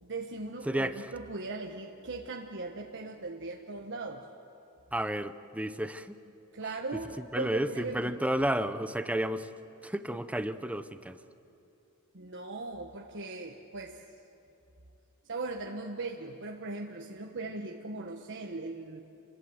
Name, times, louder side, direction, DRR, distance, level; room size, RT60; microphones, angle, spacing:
voice 1, 0.0-4.3 6.5-8.2 12.1-14.0 15.3-19.0, right 3 dB, 55° right, 2 dB, 1.4 m, -39 dB
voice 2, 0.6-1.1 4.9-6.2 7.2-9.5 9.8-11.2, right 1 dB, 5° right, 11 dB, 0.8 m, -32 dB
28.5 x 21.0 x 8.0 m, 2.9 s
head